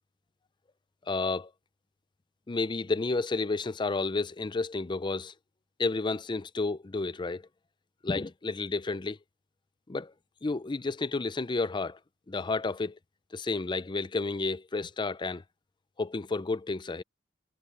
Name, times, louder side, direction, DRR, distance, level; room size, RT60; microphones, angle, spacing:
voice 1, 1.1-1.5 2.5-5.3 5.8-7.4 8.0-9.2 9.9-10.1 10.4-12.0 12.3-13.0 13.3-15.4 16.0-17.0, left 3 dB, 25° left, 0.5 m, -31 dB
head